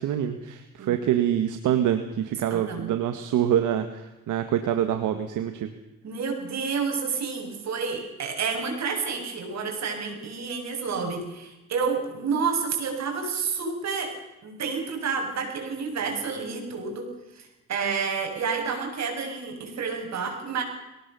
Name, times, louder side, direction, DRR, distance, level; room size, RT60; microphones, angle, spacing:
voice 1, 0.0-5.7, right 10 dB, 85° right, 8 dB, 1.7 m, -25 dB
voice 2, 2.5-2.9 6.0-14.1 14.4-20.6, right 5 dB, 60° right, 3 dB, 7.3 m, -30 dB
23.0 x 18.5 x 7.0 m, 1.0 s
cardioid pair, 90°, 30 cm